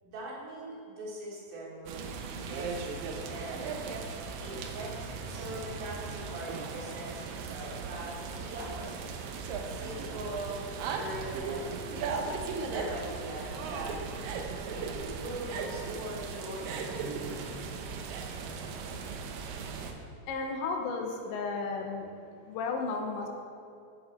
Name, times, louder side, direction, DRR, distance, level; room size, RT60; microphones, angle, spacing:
voice 1, 0.0-3.8 4.4-9.1 9.6-12.2 12.6-14.0 14.7-17.0, right 1 dB, 70° right, -5 dB, 4.3 m, -41 dB
sound 1, 1.9-19.9, right 4 dB, 85° right, 1.9 m, -37 dB
voice 2, 20.3-22.1 22.4-23.3, left 4 dB, 90° left, 2 dB, 3.3 m, -33 dB
16.0 x 7.0 x 4.4 m, 2.5 s
omnidirectional pair, 5.1 m